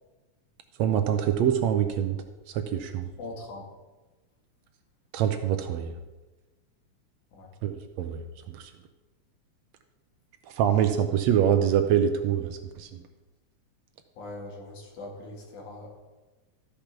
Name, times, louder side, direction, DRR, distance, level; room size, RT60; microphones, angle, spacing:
voice 1, 0.8-2.2 2.5-3.1 5.1-5.9 7.6-8.7 10.5-13.0, right 9 dB, 75° right, 8 dB, 1.8 m, -25 dB
voice 2, 3.2-3.7 7.3-7.5 14.2-16.0, left 2 dB, 80° left, 0 dB, 3.4 m, -41 dB
13.5 x 5.2 x 5.9 m, 1.2 s
omnidirectional pair, 3.4 m